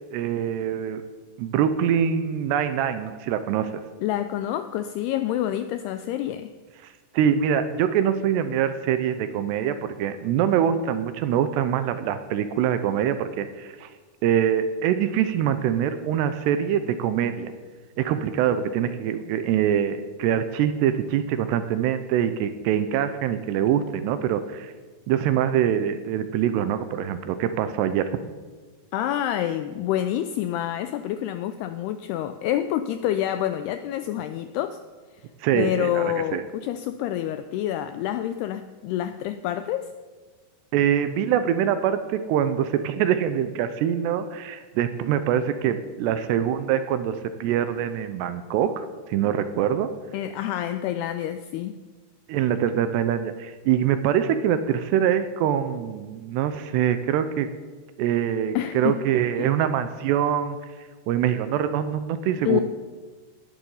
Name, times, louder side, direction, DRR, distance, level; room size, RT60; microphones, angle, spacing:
voice 1, 0.1-1.0 1.4-3.8 7.1-13.9 14.2-17.5 18.0-24.7 25.1-28.2 35.4-36.4 40.7-49.9 52.3-57.5 58.0-60.6 61.1-62.6, right 9 dB, 80° right, 11 dB, 2.7 m, -24 dB
voice 2, 4.0-6.5 28.9-34.8 35.5-39.9 50.1-51.7 58.6-59.0 59.4-59.5 62.5-62.6, left 12 dB, 90° left, 10 dB, 2.3 m, -27 dB
18.0 x 10.0 x 5.5 m, 1.4 s
omnidirectional pair, 5.2 m